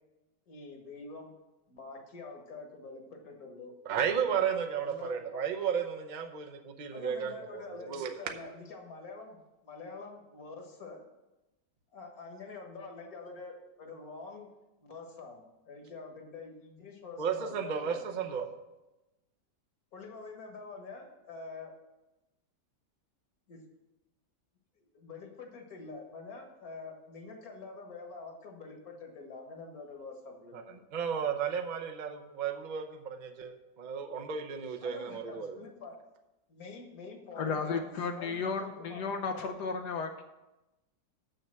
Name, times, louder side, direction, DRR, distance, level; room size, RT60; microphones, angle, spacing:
voice 1, 0.5-1.3 1.7-3.7 4.8-5.4 6.9-9.4 9.6-11.0 11.9-14.5 14.9-18.0 19.9-21.7 23.5-23.6 24.8-30.8 34.8-36.0 36.5-37.8 38.1-39.5, left 3 dB, 60° left, 3 dB, 1.8 m, -46 dB
voice 2, 3.8-8.3 17.2-18.5 30.5-35.6, right 7 dB, 45° right, 4 dB, 0.6 m, -34 dB
voice 3, 37.4-40.2, left 5 dB, 75° left, 6 dB, 1.2 m, -34 dB
6.6 x 6.5 x 7.5 m, 1.0 s
omnidirectional pair, 1.8 m